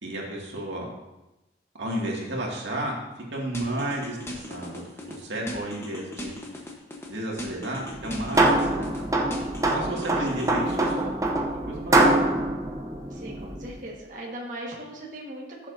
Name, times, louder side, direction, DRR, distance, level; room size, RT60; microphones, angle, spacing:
voice 1, 0.0-0.8 1.8-3.0 3.3-6.3 7.1-9.1 9.7-11.1 11.7-12.2, right 1 dB, 85° right, -2 dB, 2.3 m, -32 dB
sound 1, 3.5-5.2 5.5-7.1 7.4-9.0 9.3-10.9, left 1 dB, 15° left, 1.1 m, -38 dB
sound 2, 7.9-13.8, right 2 dB, 20° right, 0.7 m, -24 dB
voice 2, 13.1-15.7, right 1 dB, 45° right, -3 dB, 1.7 m, -39 dB
14.5 x 7.2 x 2.8 m, 0.99 s
head